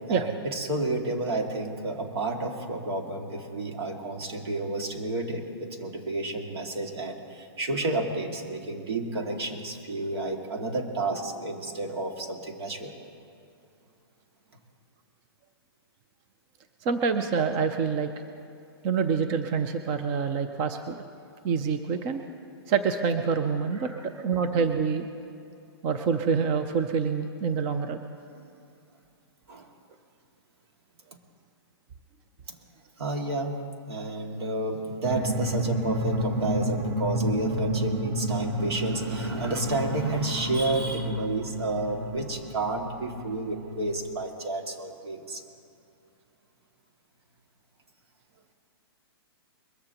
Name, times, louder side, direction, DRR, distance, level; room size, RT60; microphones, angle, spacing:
voice 1, 0.1-12.9 23.8-24.1 28.3-28.5 29.5-29.7 32.5-32.6 33.0-33.6 33.9-45.4, right 2 dB, 75° right, 2 dB, 2.2 m, -31 dB
voice 2, 16.8-18.1 18.8-21.0 21.4-22.2 22.7-25.1 25.8-28.0, right 5 dB, 20° right, 8 dB, 0.5 m, -26 dB
sound 1, 35.0-44.2, right 1 dB, 40° right, 1.2 m, -31 dB
22.0 x 14.5 x 2.9 m, 2.4 s
hypercardioid pair, 165°, 13 cm